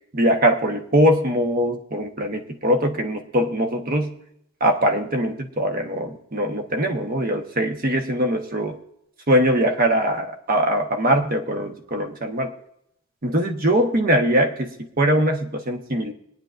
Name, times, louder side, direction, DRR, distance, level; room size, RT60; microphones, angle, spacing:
voice 1, 0.1-4.2 4.6-8.8 9.3-12.5 13.2-14.7 15.0-16.1, equal, 45° right, 4 dB, 1.2 m, -21 dB
25.0 x 9.3 x 2.6 m, 0.75 s
head